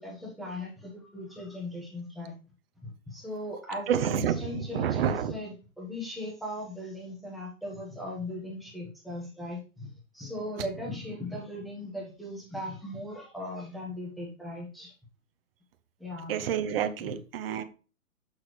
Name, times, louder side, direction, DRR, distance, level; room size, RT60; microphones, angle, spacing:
voice 1, 0.0-2.3 2.8-14.9 16.0-16.3, left 1 dB, ahead, -3 dB, 1.2 m, -38 dB
voice 2, 3.9-5.3 16.3-17.6, right 9 dB, 45° right, 8 dB, 0.8 m, -29 dB
6.4 x 6.1 x 3.1 m, 0.34 s
hypercardioid pair, 155°, 42 cm